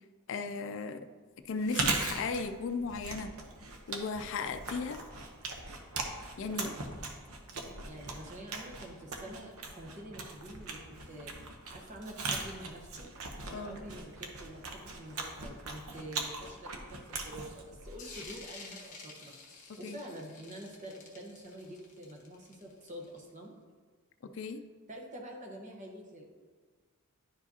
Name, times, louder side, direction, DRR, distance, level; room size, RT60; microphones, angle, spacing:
voice 1, 0.3-1.1 1.5-3.3 3.9-5.0 6.4-6.7 13.5-13.8 19.8-20.0 24.3-24.6, left 4 dB, 60° left, 9 dB, 0.4 m, -36 dB
Chewing mastication, 1.5-18.4, right 3 dB, 80° right, 0.9 m, -39 dB
voice 2, 6.5-7.1 7.8-11.3 11.7-13.1 13.4-19.3 19.8-23.5 24.9-26.3, right 1 dB, 35° right, 0 dB, 1.1 m, -47 dB
sound 1, 18.0-23.3, left 3 dB, 35° left, 1.1 m, -50 dB
10.5 x 4.8 x 2.8 m, 1.5 s
head